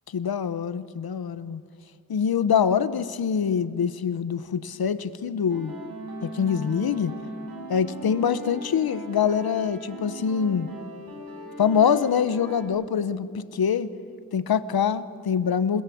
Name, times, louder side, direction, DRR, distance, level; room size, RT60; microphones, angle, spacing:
voice 1, 0.1-1.6 2.1-5.7 6.2-7.1 7.7-10.7 11.6-13.9 14.3-15.8, left 7 dB, 85° left, 14 dB, 1.0 m, -24 dB
sound 1, 5.5-12.6, right 1 dB, 80° right, 5.7 m, -39 dB
27.5 x 20.0 x 8.5 m, 2.3 s
wide cardioid pair, 115°, 36 cm